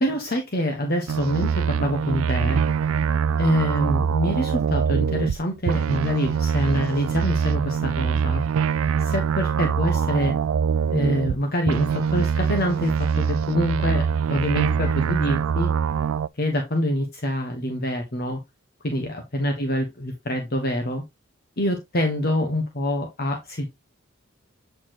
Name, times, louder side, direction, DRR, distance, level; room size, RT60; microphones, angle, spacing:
voice 1, 0.0-2.6 3.4-8.4 9.0-10.3 10.9-15.7 16.3-18.4 18.8-21.0 21.6-23.7, equal, 50° left, 4 dB, 1.2 m, -25 dB
sound 1, 1.1-5.4 5.7-11.4 11.7-16.3, right 7 dB, 85° right, 0.3 m, -23 dB
8.4 x 4.6 x 2.9 m, 0.19 s
head